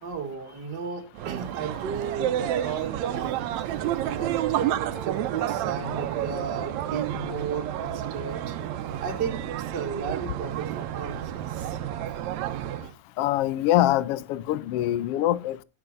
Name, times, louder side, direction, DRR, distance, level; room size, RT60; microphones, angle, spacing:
voice 1, 0.0-3.5 4.1-8.6 9.0-11.8, right 6 dB, 40° right, 2.4 m, -34 dB
sound 1, 1.1-12.9, right 11 dB, 75° right, 2.0 m, -30 dB
voice 2, 13.2-15.6, left 14 dB, 75° left, 1.4 m, -24 dB
19.5 x 8.4 x 2.6 m
omnidirectional pair, 3.4 m